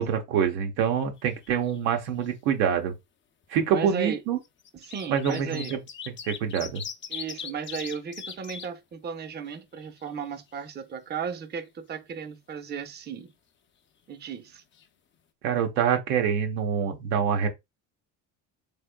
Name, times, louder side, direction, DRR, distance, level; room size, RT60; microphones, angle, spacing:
voice 1, 0.0-2.9 3.5-4.4 5.1-5.8 6.1-6.8 15.4-17.5, right 8 dB, 85° right, 1.1 m, -26 dB
sound 1, 1.2-1.9 2.2-2.3 3.4-3.5 4.4-8.7 9.1-9.2 9.5-10.6 14.4-14.5 14.7-14.8, left 7 dB, 30° left, 0.5 m, -40 dB
voice 2, 3.7-4.2 4.7-5.7 7.1-13.3 14.1-14.6, right 6 dB, 25° right, 0.6 m, -35 dB
3.5 x 3.4 x 2.2 m
supercardioid pair, 90°, 44 cm